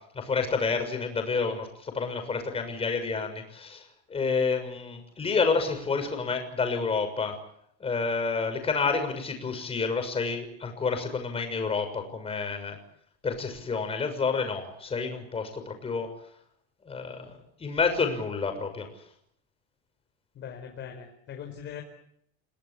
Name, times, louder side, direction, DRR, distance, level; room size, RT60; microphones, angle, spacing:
voice 1, 0.1-7.3 7.8-12.8 13.2-16.1 16.8-18.9, left 4 dB, 20° left, 6 dB, 6.5 m, -29 dB
voice 2, 20.3-21.8, left 8 dB, 40° left, 3 dB, 5.0 m, -40 dB
29.5 x 18.5 x 8.6 m, 0.72 s
cardioid pair, 150°, 29 cm